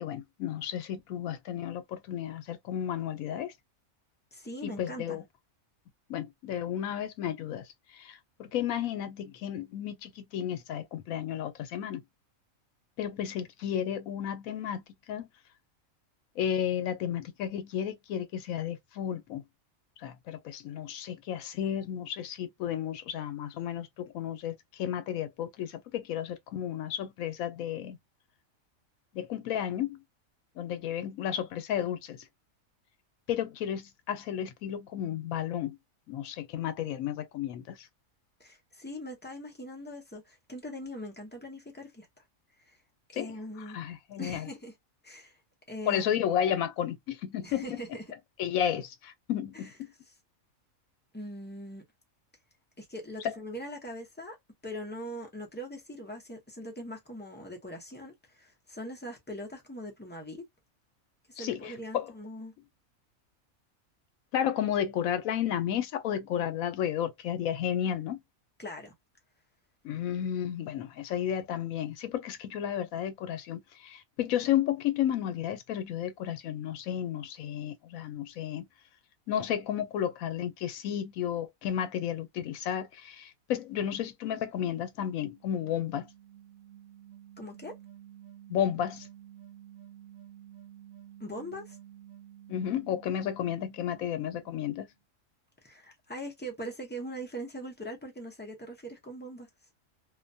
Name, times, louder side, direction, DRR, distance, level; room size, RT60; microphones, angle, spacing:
voice 1, 0.0-3.5 4.6-5.2 6.1-7.7 7.9-12.0 13.0-14.8 15.1-15.3 16.4-19.4 20.0-28.0 29.1-30.0 30.6-32.2 33.3-35.8 36.1-37.9 43.1-43.3 43.7-44.5 45.9-47.6 48.4-49.9 53.2-53.4 61.4-62.1 64.3-68.2 69.8-78.7 79.3-86.1 88.5-89.1 92.5-94.9, left 10 dB, 80° left, 1.0 m, -32 dB
voice 2, 4.3-5.2 38.4-42.1 42.6-42.8 43.1-43.8 44.2-44.7 45.0-45.4 45.7-46.1 47.4-48.1 49.5-49.7 51.1-51.8 52.8-54.4 54.6-60.4 61.3-62.5 68.6-68.9 87.4-87.8 91.2-91.8 95.6-99.5, equal, 15° left, 0.4 m, -41 dB
sound 1, 84.8-94.9, right 11 dB, 65° right, 1.2 m, -52 dB
2.5 x 2.2 x 2.5 m
omnidirectional pair, 1.4 m